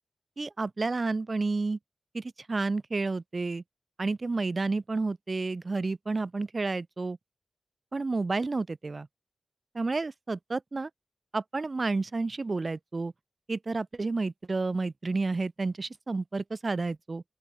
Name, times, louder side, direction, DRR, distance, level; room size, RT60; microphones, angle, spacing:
voice 1, 0.4-1.8 2.1-3.6 4.0-7.2 7.9-9.1 9.7-10.9 11.3-13.1 13.5-17.2, right 3 dB, 45° right, 1.8 m, -30 dB
open air
wide cardioid pair, 90°, 0 cm